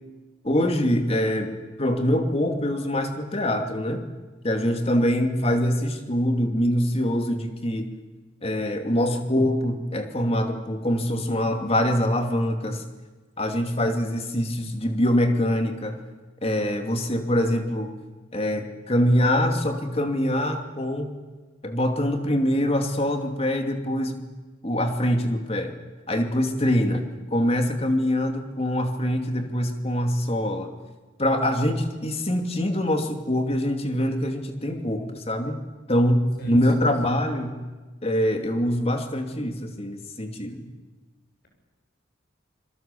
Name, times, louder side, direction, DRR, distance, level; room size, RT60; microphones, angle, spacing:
voice 1, 0.4-4.0 4.4-7.9 8.4-12.8 13.4-16.0 16.4-17.9 18.3-21.1 21.6-24.3 24.6-25.7 26.1-27.0 27.3-30.7 31.2-35.6 35.9-37.6 38.0-40.7, equal, 30° left, 5 dB, 2.7 m, -24 dB
voice 2, 36.4-36.9, right 1 dB, 50° left, 2 dB, 7.4 m, -33 dB
27.5 x 22.0 x 7.0 m, 1.3 s
head